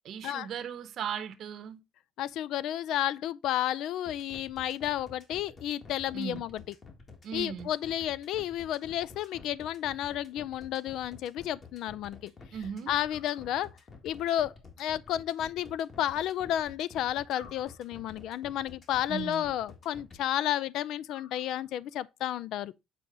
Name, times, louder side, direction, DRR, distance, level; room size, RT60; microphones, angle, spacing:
voice 1, 0.0-1.8 6.1-6.4 7.2-7.7 12.5-12.9 19.1-19.5, right 8 dB, 55° right, 0.8 m, -37 dB
voice 2, 2.2-6.6 7.3-12.3 12.9-13.7 14.0-22.7, left 12 dB, 70° left, 0.3 m, -32 dB
sound 1, 4.1-20.2, left 4 dB, 35° left, 1.7 m, -50 dB
sound 2, 9.1-10.0 13.1-14.1 17.3-18.4 21.0-22.0, left 6 dB, 90° left, 2.2 m, -58 dB
7.5 x 4.8 x 3.9 m
cardioid pair, 140°, 0 cm